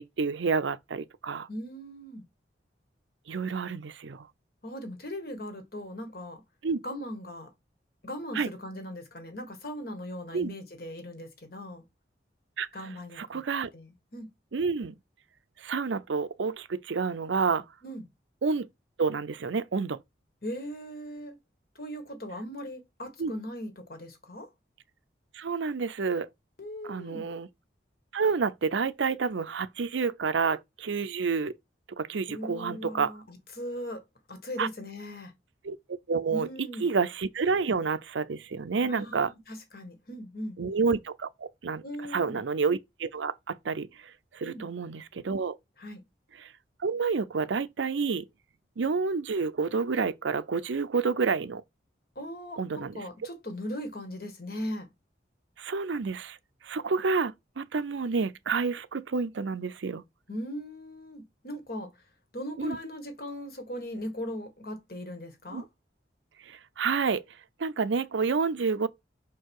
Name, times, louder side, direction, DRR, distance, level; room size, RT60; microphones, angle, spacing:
voice 1, 0.0-1.5 3.3-4.3 6.6-6.8 8.3-8.5 10.3-10.5 12.6-12.7 13.2-13.7 14.5-14.9 15.6-17.6 18.4-18.7 19.0-20.0 23.2-23.3 25.3-26.3 26.9-27.5 28.1-31.5 32.0-33.1 34.6-34.7 35.6-35.8 36.1-39.3 40.6-41.8 42.1-45.6 46.4-46.5 46.8-48.2 48.8-51.6 52.6-53.0 55.6-56.4 56.6-60.0 62.6-62.8 65.5-65.6 66.5-67.2 67.6-68.9, right 5 dB, 85° right, 0.6 m, -29 dB
voice 2, 1.5-2.2 4.6-6.4 6.8-7.5 8.0-11.8 12.7-13.4 13.7-14.3 17.8-18.1 20.4-21.4 21.8-24.5 26.6-27.3 32.3-34.0 34.3-35.3 36.3-36.9 38.8-40.6 41.8-42.4 44.4-44.7 45.8-46.0 52.2-54.9 60.3-61.9 62.3-65.7, equal, 55° left, 1.7 m, -39 dB
5.8 x 4.5 x 4.7 m
head